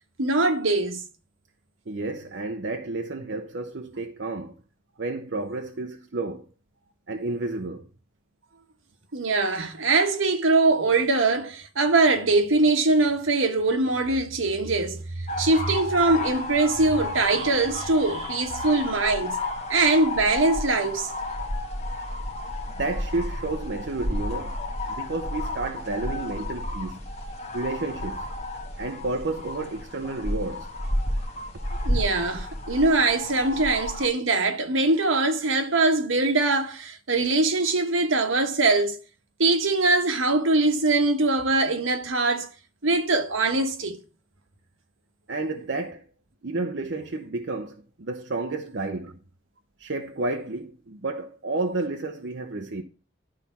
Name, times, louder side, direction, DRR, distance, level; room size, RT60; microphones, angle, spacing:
voice 1, 0.2-1.0 9.1-19.4 19.7-21.1 31.8-39.0 39.4-42.5 42.8-44.0, right 3 dB, 80° right, 1.3 m, -22 dB
voice 2, 1.9-4.5 5.0-6.4 7.1-7.9 22.7-24.6 24.9-27.0 27.5-28.3 28.8-30.7 45.3-46.0 46.4-49.2 49.8-52.8, right 2 dB, 60° right, 0.7 m, -31 dB
sound 1, 15.3-34.1, left 1 dB, 35° left, 1.5 m, -32 dB
11.5 x 4.1 x 5.9 m
head